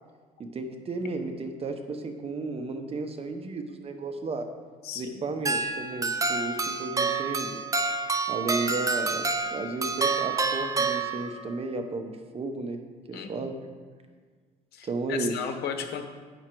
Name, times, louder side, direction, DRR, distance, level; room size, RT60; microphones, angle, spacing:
voice 1, 0.4-4.5 4.9-7.6 8.3-12.8 13.1-13.6 14.8-15.4, right 3 dB, 35° right, 6 dB, 0.9 m, -33 dB
voice 2, 4.8-5.2 13.1-13.5 14.7-16.0, left 8 dB, 70° left, 7 dB, 0.9 m, -35 dB
sound 1, 5.5-11.6, right 4 dB, 20° right, 0.6 m, -28 dB
8.8 x 6.1 x 4.5 m, 1.5 s
cardioid pair, 110°, 17 cm